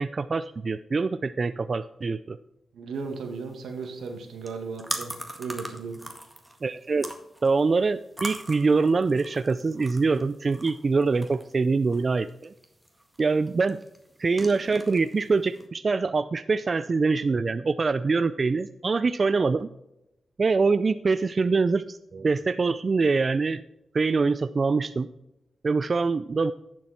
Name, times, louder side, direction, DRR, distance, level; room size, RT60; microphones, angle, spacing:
voice 1, 0.0-2.4 6.6-7.1 7.4-12.5 13.2-13.8 14.2-19.7 20.4-23.6 23.9-25.1 25.6-26.5, right 4 dB, 45° right, 12 dB, 0.4 m, -24 dB
voice 2, 2.7-5.1 5.4-6.0, right 4 dB, 85° right, 4 dB, 1.9 m, -35 dB
sound 1, 3.0-15.7, right 1 dB, 5° right, 1.8 m, -42 dB
11.0 x 7.5 x 4.3 m, 0.88 s
cardioid pair, 75°, 0 cm